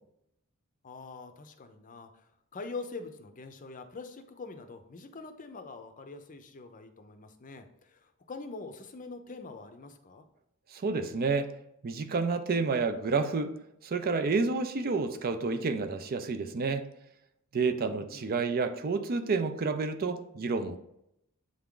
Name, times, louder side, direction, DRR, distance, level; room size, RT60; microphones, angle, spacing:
voice 1, 0.8-10.2 17.9-18.3, left 3 dB, 35° left, 7 dB, 0.6 m, -44 dB
voice 2, 10.7-11.5 11.8-13.5 13.8-16.9 17.5-20.8, right 4 dB, 45° right, 8 dB, 0.5 m, -29 dB
7.7 x 3.5 x 3.7 m, 0.80 s
head